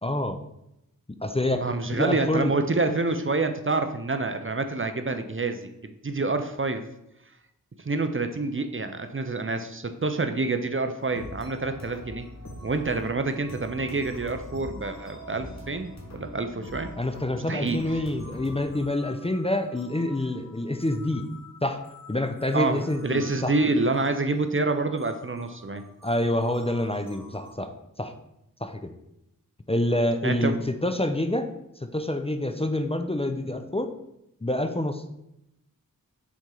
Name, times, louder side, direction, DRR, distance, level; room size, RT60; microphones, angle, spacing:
voice 1, 0.0-0.4 1.2-2.5 17.0-21.3 21.6-21.8 22.1-23.5 26.0-27.7 28.0-28.1 28.6-28.9 29.7-31.5 31.8-33.9 34.4-35.0, left 1 dB, 15° left, 6 dB, 0.5 m, -27 dB
voice 2, 1.5-6.9 7.9-12.3 12.6-16.9 17.5-17.8 22.5-25.8 30.2-30.6, right 3 dB, 35° right, 8 dB, 0.5 m, -27 dB
sound 1, 11.0-27.5, left 1 dB, 50° left, 1.4 m, -45 dB
6.0 x 4.3 x 3.8 m, 0.85 s
wide cardioid pair, 45°, 35 cm